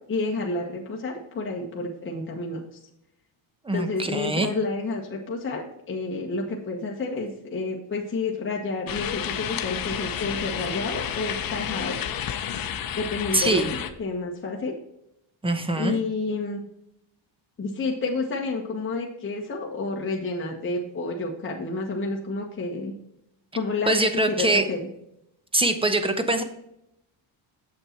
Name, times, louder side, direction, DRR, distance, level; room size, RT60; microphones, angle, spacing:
voice 1, 0.1-2.6 3.7-11.9 12.9-13.6 14.0-14.8 15.7-16.6 17.6-22.9 23.5-24.8, left 3 dB, 25° left, -1 dB, 1.4 m, -30 dB
voice 2, 3.6-4.5 13.3-13.7 15.4-16.0 23.9-24.7 25.5-26.4, right 2 dB, 10° right, 9 dB, 0.9 m, -23 dB
sound 1, 8.9-13.9, left 9 dB, 45° left, 0.8 m, -31 dB
7.4 x 6.6 x 4.4 m, 0.80 s
cardioid pair, 130°, 48 cm